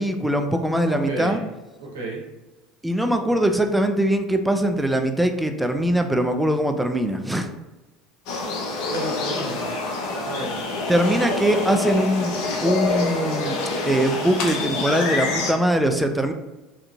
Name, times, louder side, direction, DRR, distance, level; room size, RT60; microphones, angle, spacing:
voice 1, 0.0-1.4 2.8-7.5 10.9-13.6 13.9-16.3, right 1 dB, 5° right, 6 dB, 0.3 m, -22 dB
voice 2, 0.9-1.4 1.8-2.2 8.9-9.6 10.2-10.5, right 2 dB, 80° right, -2 dB, 0.7 m, -31 dB
sound 1, 8.3-15.5, left 3 dB, 65° left, 0.5 m, -26 dB
2.8 x 2.4 x 2.2 m, 1.1 s
hypercardioid pair, 75°, 0 cm